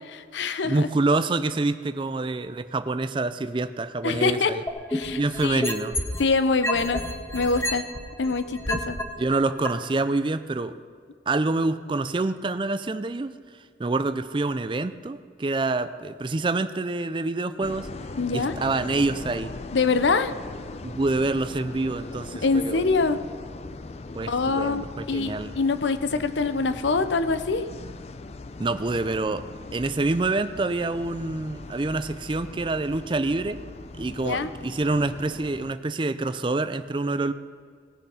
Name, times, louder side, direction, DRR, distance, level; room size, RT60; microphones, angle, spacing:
voice 1, 0.1-0.9 4.0-4.5 4.9-5.7 6.2-7.0 7.3-7.8 8.2-9.0 18.2-18.5 19.7-20.3 22.4-23.2 24.3-27.6 34.2-34.5, left 4 dB, 85° left, 11 dB, 0.7 m, -24 dB
voice 2, 0.6-4.6 5.2-6.0 9.2-10.8 11.3-13.3 13.8-17.9 18.3-19.5 20.8-22.9 24.1-25.5 28.6-29.4 29.7-33.6 34.0-37.3, right 2 dB, 25° right, 12 dB, 0.4 m, -26 dB
sound 1, 4.7-6.2 6.6-9.0 9.6-9.7, left 1 dB, 15° left, 1.0 m, -28 dB
sound 2, 17.6-35.7, left 3 dB, 35° left, 0.4 m, -40 dB
18.0 x 7.1 x 5.7 m, 2.1 s
head